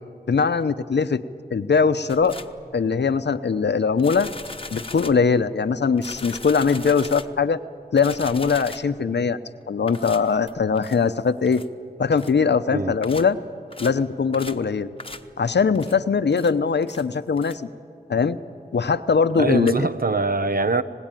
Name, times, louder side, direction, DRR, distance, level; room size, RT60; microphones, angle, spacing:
voice 1, 0.3-1.2 1.5-2.4 2.7-4.3 4.7-7.6 7.9-9.4 9.7-11.6 12.0-13.4 13.8-14.9 15.4-17.6 18.1-18.4 18.7-19.9, left 5 dB, 85° left, 12 dB, 0.8 m, -21 dB
sound 1, 2.1-2.6 4.0-5.3 6.0-7.5 8.0-9.0 9.9-11.0 11.5-11.7 12.1-12.4 13.0-13.4 13.7-14.0 14.3-14.7 15.0-15.3 15.7-16.0 16.3-16.6 16.8-17.1 17.4-17.6 19.3-19.4 19.6-19.7, left 2 dB, 30° left, 1.1 m, -39 dB
voice 2, 19.4-20.8, right 3 dB, 55° right, 11 dB, 1.0 m, -23 dB
26.0 x 19.0 x 9.1 m, 2.3 s
cardioid pair, 45°, 17 cm